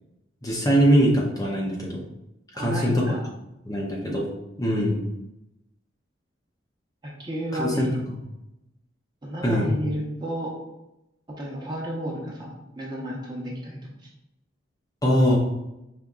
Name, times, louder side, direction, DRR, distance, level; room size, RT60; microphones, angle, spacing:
voice 1, 0.4-2.0 2.6-3.0 3.7-4.3 4.6-5.0 7.6-8.2 9.4-9.7 15.0-15.4, equal, 20° left, -3 dB, 0.6 m, -22 dB
voice 2, 2.5-3.3 7.0-8.0 9.2-10.5 11.3-14.1, equal, 25° right, -3 dB, 1.0 m, -32 dB
5.3 x 3.4 x 2.4 m, 0.89 s
head